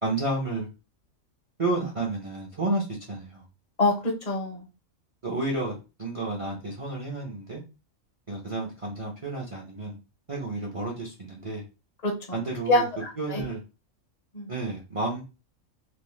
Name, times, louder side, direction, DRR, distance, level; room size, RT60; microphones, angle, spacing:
voice 1, 0.0-0.7 1.6-3.4 5.2-7.6 8.3-10.0 10.3-11.6 12.3-12.9 13.2-13.6 14.5-15.2, right 2 dB, 40° right, 0.5 m, -31 dB
voice 2, 3.8-4.6 12.0-12.4 12.7-13.4 14.3-14.5, left 2 dB, 40° left, 0.6 m, -26 dB
2.8 x 2.0 x 3.1 m
omnidirectional pair, 1.4 m